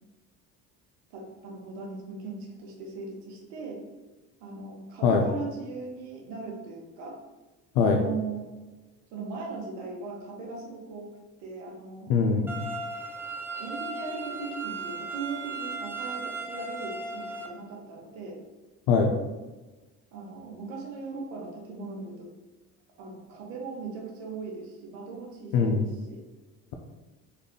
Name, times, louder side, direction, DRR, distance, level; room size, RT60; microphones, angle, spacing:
voice 1, 1.1-3.8 4.4-7.2 7.8-8.5 9.1-11.1 11.4-12.1 13.6-18.4 20.1-22.3 23.0-26.2, right 4 dB, 85° right, -1 dB, 1.0 m, -39 dB
voice 2, 12.1-12.6 18.9-19.1 25.5-25.8, left 5 dB, 70° left, 2 dB, 0.5 m, -22 dB
sound 1, 12.5-17.5, right 3 dB, 5° right, 0.4 m, -36 dB
3.4 x 2.3 x 3.7 m, 1.2 s
supercardioid pair, 85°, 36 cm